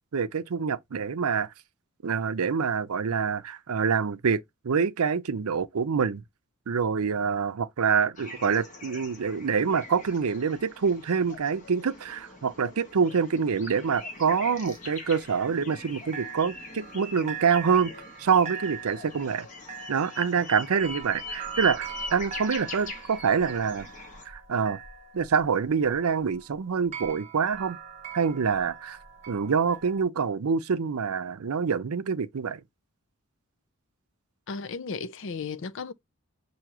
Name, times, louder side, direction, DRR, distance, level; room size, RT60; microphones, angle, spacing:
voice 1, 0.1-1.5 2.0-6.2 6.7-17.9 18.2-19.5 19.9-23.9 24.3-24.8 25.1-27.8 28.1-29.0 29.3-32.6, right 6 dB, 90° right, 0.5 m, -26 dB
sound 1, 8.2-24.2, left 2 dB, 35° left, 1.3 m, -42 dB
sound 2, 13.9-15.9 16.1-30.0, right 7 dB, 30° right, 0.8 m, -43 dB
voice 2, 34.5-35.9, left 5 dB, 60° left, 0.5 m, -35 dB
5.9 x 2.8 x 2.8 m
head